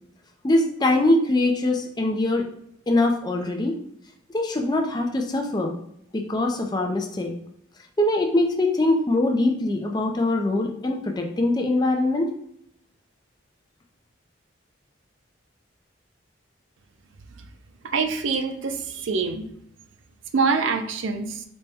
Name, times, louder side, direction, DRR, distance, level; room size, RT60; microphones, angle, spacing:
voice 1, 0.4-2.5 2.9-3.8 4.3-5.7 6.1-7.3 8.0-12.3, left 2 dB, 20° left, 2 dB, 0.4 m, -22 dB
voice 2, 17.8-19.5 20.3-21.4, right 4 dB, 70° right, 7 dB, 0.4 m, -25 dB
4.0 x 2.1 x 3.4 m, 0.73 s
head